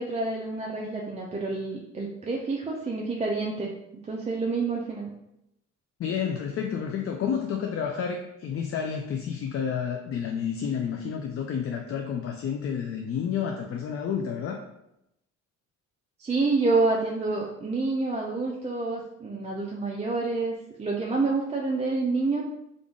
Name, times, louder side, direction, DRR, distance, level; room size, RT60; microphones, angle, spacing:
voice 1, 0.0-3.7 4.0-5.1 16.2-22.4, right 3 dB, 20° right, -2 dB, 0.5 m, -28 dB
voice 2, 6.0-14.6, left 7 dB, 50° left, 3 dB, 0.4 m, -30 dB
3.6 x 2.5 x 3.6 m, 0.86 s
cardioid pair, 90°, 30 cm